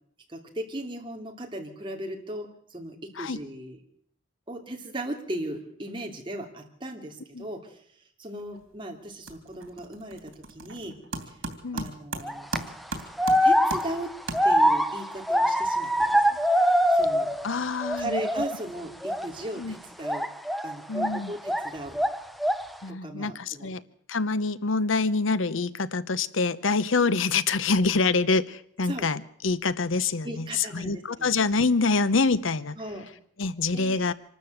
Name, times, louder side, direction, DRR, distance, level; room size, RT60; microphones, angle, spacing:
voice 1, 0.3-3.8 4.5-7.8 8.2-11.0 11.3-11.4 11.7-12.5 13.4-14.1 14.4-16.2 16.9-17.3 18.0-20.3 20.6-22.0 22.9-23.7 28.9-29.1 30.2-31.3 32.8-33.1 33.7-34.0, right 1 dB, 25° right, 2 dB, 2.9 m, -37 dB
sound 1, 8.4-8.8 9.0-14.9, right 2 dB, 85° right, 3.0 m, -38 dB
sound 2, 12.2-12.6 13.2-17.5 17.8-18.6 19.0-19.3 20.0-21.7 21.9-22.7, equal, ahead, 0.7 m, -23 dB
voice 2, 17.4-18.2 19.6-19.7 20.9-21.3 22.8-23.8 24.1-32.8 33.4-34.1, left 4 dB, 80° left, 16 dB, 0.8 m, -26 dB
25.5 x 13.0 x 8.0 m, 0.65 s
head